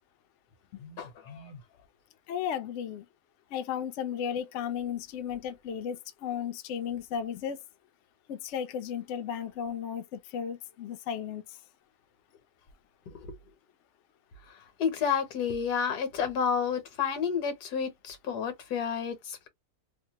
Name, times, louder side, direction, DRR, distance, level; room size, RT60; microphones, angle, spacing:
voice 1, 0.8-1.6 13.1-13.3 14.8-19.5, left 7 dB, 80° left, 1.5 m, -31 dB
voice 2, 2.3-3.1 3.5-7.6 8.3-11.4, left 8 dB, 65° left, 0.7 m, -34 dB
3.1 x 2.2 x 2.8 m
omnidirectional pair, 1.7 m